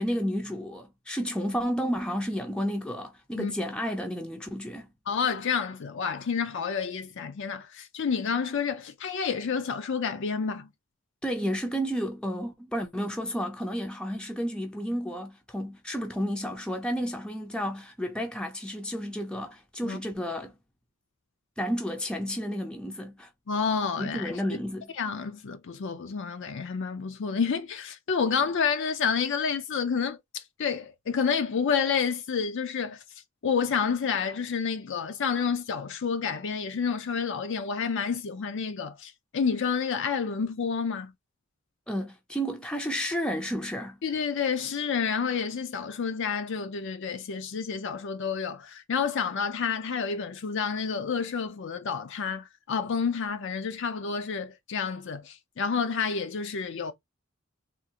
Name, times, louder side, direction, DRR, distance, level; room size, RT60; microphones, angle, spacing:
voice 1, 0.0-4.9 11.2-20.5 21.6-23.3 24.0-24.9 41.9-44.0, equal, 5° left, 0.5 m, -31 dB
voice 2, 5.1-10.7 19.8-20.0 23.5-24.4 25.0-33.0 33.4-41.1 44.0-56.9, left 6 dB, 65° left, 0.5 m, -29 dB
3.6 x 2.4 x 2.8 m
head